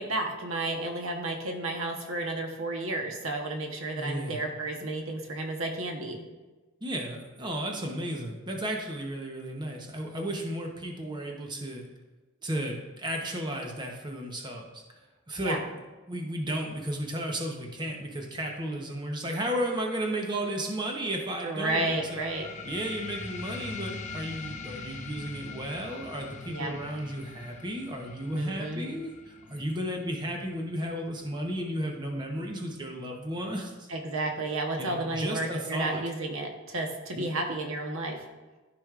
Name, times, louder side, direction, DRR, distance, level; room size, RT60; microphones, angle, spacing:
voice 1, 0.0-6.3 15.4-15.6 21.4-22.5 26.5-26.8 28.3-28.9 33.9-38.2, right 2 dB, 75° right, 2 dB, 1.1 m, -32 dB
voice 2, 4.0-4.4 6.8-11.8 12.4-14.8 15.3-15.6 16.1-22.2 22.6-33.9 34.8-36.0 37.2-37.3, right 1 dB, 20° right, 1 dB, 0.9 m, -34 dB
sound 1, 21.7-32.7, left 4 dB, 35° left, 0.7 m, -43 dB
13.5 x 5.2 x 2.5 m, 1.2 s
head